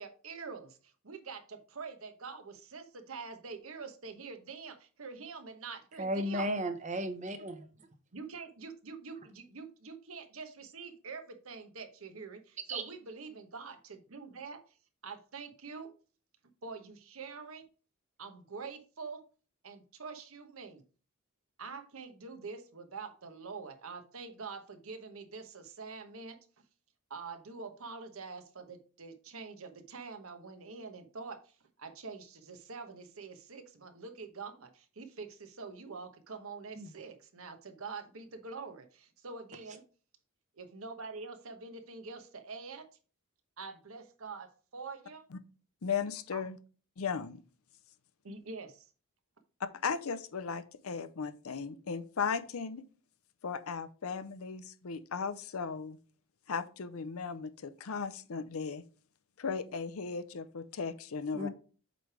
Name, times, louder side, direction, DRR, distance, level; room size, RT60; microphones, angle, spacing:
voice 1, 0.0-6.5 8.1-14.6 15.0-15.9 16.6-17.7 18.2-19.2 19.6-20.8 21.6-26.4 27.1-39.8 40.6-42.8 43.6-45.2 46.3-46.4 48.2-48.9, right 4 dB, 75° right, 1.0 m, -45 dB
voice 2, 6.0-7.7 12.7-12.8 36.7-36.9 61.3-61.5, right 1 dB, 35° right, 0.8 m, -34 dB
voice 3, 45.8-46.6 47.0-47.4 49.8-52.8 53.4-56.0 56.5-58.8 59.4-61.5, left 5 dB, 75° left, 0.6 m, -36 dB
7.8 x 3.3 x 4.7 m
head